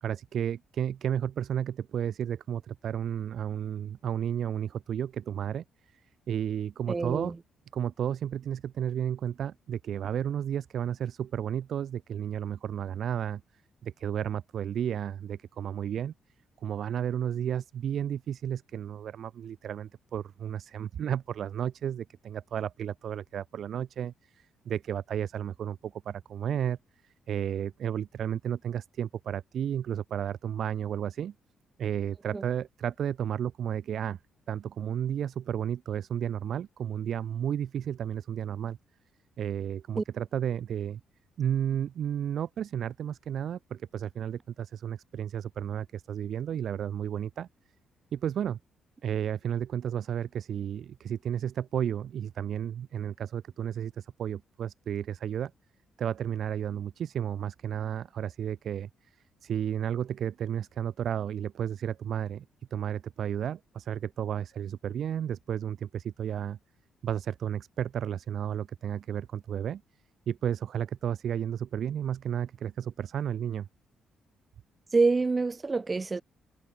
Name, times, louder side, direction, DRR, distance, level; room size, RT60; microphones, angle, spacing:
voice 1, 0.0-6.0 6.3-7.3 7.7-13.4 13.8-16.1 16.6-26.8 27.0-31.3 31.8-34.2 34.5-38.8 39.4-41.0 41.4-47.5 48.1-48.6 49.0-55.5 56.0-62.4 62.7-66.6 67.0-69.8 70.3-73.7, right 9 dB, 65° right, 1.5 m, -32 dB
voice 2, 6.9-7.4 32.3-32.4 40.0-40.1 74.9-76.2, right 3 dB, 25° right, 1.5 m, -26 dB
cardioid pair, 90°, 0 cm